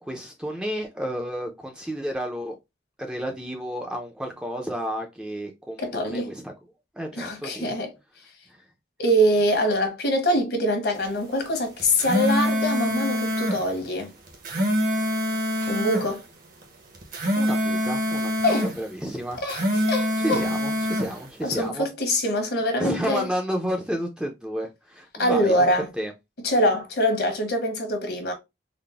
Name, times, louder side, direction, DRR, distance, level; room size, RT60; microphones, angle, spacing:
voice 1, 0.0-2.6 3.0-6.5 7.0-7.8 17.4-19.4 20.2-21.9 22.8-25.5 26.0-26.1, equal, 5° right, 0.5 m, -31 dB
voice 2, 5.8-6.3 7.2-7.9 9.0-14.1 15.7-16.2 18.4-18.7 19.4-20.4 21.4-23.3 25.2-25.9 26.4-28.3, equal, 65° left, 1.1 m, -24 dB
sound 1, 11.8-13.6 14.3-16.1 16.9-18.7 19.4-21.1, left 1 dB, 50° right, 0.9 m, -25 dB
3.9 x 2.1 x 3.3 m
head